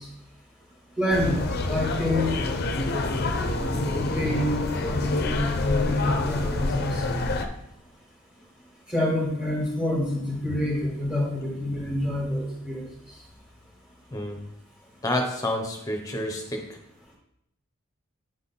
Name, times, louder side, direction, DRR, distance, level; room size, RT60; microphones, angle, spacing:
voice 1, 1.0-3.2 3.7-7.0 8.9-12.8, left 1 dB, 5° right, -4 dB, 2.0 m, -27 dB
sound 1, 1.1-7.5, left 2 dB, 45° left, 0.6 m, -27 dB
voice 2, 15.0-16.6, left 1 dB, 15° left, 3 dB, 0.9 m, -28 dB
8.9 x 3.7 x 4.2 m, 0.78 s
head